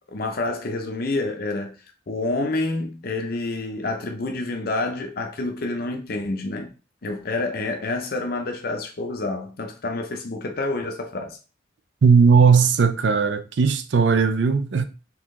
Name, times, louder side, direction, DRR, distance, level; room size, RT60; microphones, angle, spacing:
voice 1, 0.1-1.8 2.1-6.7 7.0-11.4, left 2 dB, 50° left, 0.6 m, -28 dB
voice 2, 12.0-14.9, right 5 dB, 65° right, 0.4 m, -17 dB
3.8 x 2.9 x 3.6 m
head